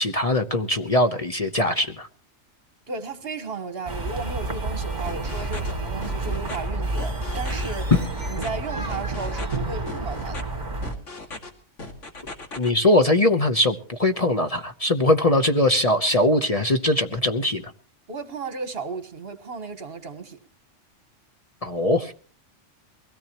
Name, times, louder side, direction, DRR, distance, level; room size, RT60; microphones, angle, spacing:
voice 1, 0.0-2.1 12.6-17.7 21.6-22.1, left 1 dB, 30° left, 1.0 m, -21 dB
voice 2, 2.9-7.9 8.3-10.4 18.1-20.4, right 4 dB, 55° right, 1.6 m, -34 dB
sound 1, 3.9-10.9, right 2 dB, 35° right, 2.4 m, -29 dB
sound 2, 5.0-5.7 6.0-6.6 7.0-7.6 7.9-8.5 8.9-9.6 9.9-10.4 10.8-11.5 11.8-12.7, left 2 dB, 75° left, 2.6 m, -37 dB
22.5 x 17.0 x 3.0 m
omnidirectional pair, 1.3 m